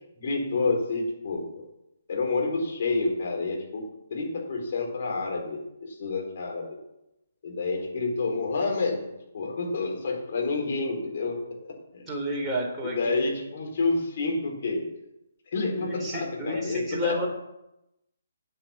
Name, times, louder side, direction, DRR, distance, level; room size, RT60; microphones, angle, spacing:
voice 1, 0.2-1.6 2.1-3.9 4.1-6.7 7.4-9.1 9.3-12.1 12.8-14.9 15.5-17.3, left 3 dB, 45° left, 1 dB, 3.9 m, -29 dB
voice 2, 12.1-13.3 15.8-17.3, equal, 10° right, -3 dB, 3.6 m, -31 dB
9.2 x 8.7 x 7.2 m, 0.88 s
figure-of-eight pair, 135°, 0 cm